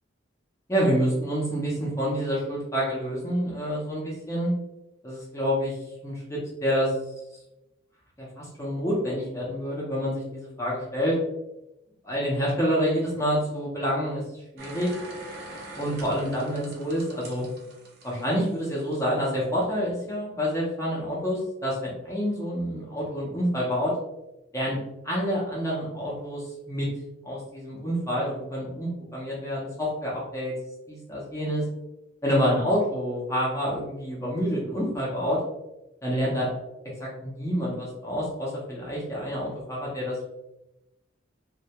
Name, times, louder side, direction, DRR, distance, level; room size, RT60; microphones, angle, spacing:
voice 1, 0.7-4.5 5.0-5.8 6.0-6.9 8.2-11.2 12.0-14.9 15.7-17.4 18.0-23.9 24.5-24.8 25.0-26.9 27.2-30.5 30.9-31.6 32.2-35.4 36.0-36.5 37.0-40.2, equal, 15° left, -5 dB, 0.5 m, -28 dB
sound 1, 14.6-18.9 19.3-19.4, right 1 dB, 55° right, 0.5 m, -43 dB
2.1 x 2.1 x 2.7 m, 0.91 s
head